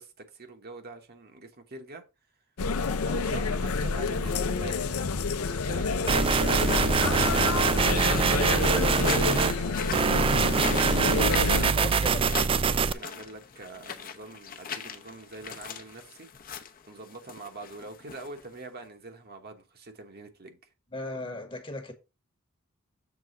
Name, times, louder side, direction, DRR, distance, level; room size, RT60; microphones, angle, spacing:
voice 1, 0.0-2.0 3.0-8.8 9.1-9.8 11.5-12.3 12.6-16.3 16.7-20.7, right 3 dB, 45° right, 1.2 m, -45 dB
sound 1, 2.6-11.7, left 4 dB, 90° left, 0.6 m, -28 dB
sound 2, 3.2-18.8, left 7 dB, 40° left, 0.8 m, -42 dB
sound 3, 6.1-9.5 9.9-12.9, right 5 dB, 25° right, 0.3 m, -24 dB
voice 2, 11.0-11.4 11.7-12.2 20.9-21.9, left 2 dB, 25° left, 1.2 m, -37 dB
7.0 x 3.7 x 5.3 m
head